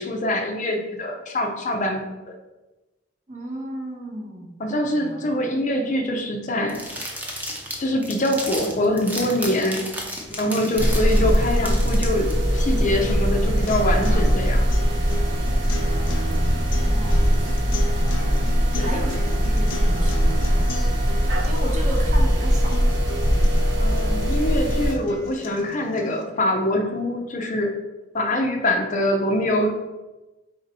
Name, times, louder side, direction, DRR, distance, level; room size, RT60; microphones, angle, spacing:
voice 1, 0.0-2.0 4.6-6.8 7.8-9.8 10.4-14.7 18.8-18.9 23.8-27.8 28.1-29.7, left 1 dB, 40° left, 3 dB, 0.5 m, -24 dB
voice 2, 3.3-4.6 4.9-5.2 16.8-17.6 18.7-20.7 21.4-22.8, right 1 dB, 40° right, 0 dB, 0.8 m, -34 dB
sound 1, 6.7-12.3, equal, 10° right, 0.6 m, -33 dB
sound 2, 10.2-26.2, left 1 dB, 85° left, 0.6 m, -37 dB
sound 3, 10.8-24.9, equal, 70° right, 0.7 m, -21 dB
4.2 x 2.6 x 4.1 m, 1.1 s
head